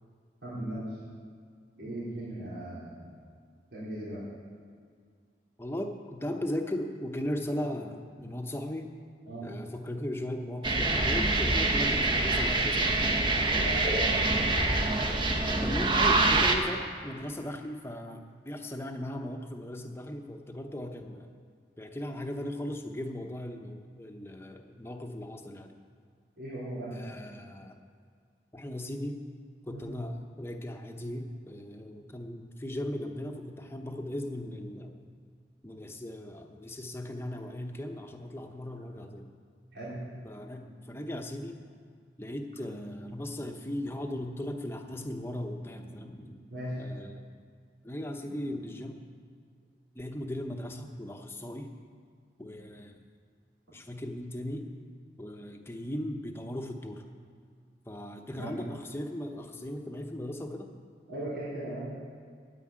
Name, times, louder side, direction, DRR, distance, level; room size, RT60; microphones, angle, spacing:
voice 1, 0.4-1.0 1.8-3.0 3.7-4.3 9.3-9.5 13.4-14.4 26.4-27.0 29.7-30.0 39.7-40.0 46.5-46.8 58.3-58.6 61.1-61.9, right 1 dB, 90° right, -9 dB, 3.8 m, -38 dB
voice 2, 5.6-8.9 9.4-13.0 15.6-21.3 21.8-25.7 26.9-27.8 28.5-29.2 29.6-35.1 35.6-39.3 40.2-41.7 42.2-46.5 46.8-47.3 47.8-49.0 49.9-51.7 52.4-52.9 53.7-54.7 55.2-57.0 57.9-60.7, left 1 dB, 15° left, 4 dB, 0.8 m, -37 dB
sound 1, 10.6-16.6, right 2 dB, 25° right, 0.9 m, -25 dB
9.7 x 9.1 x 8.7 m, 2.1 s
head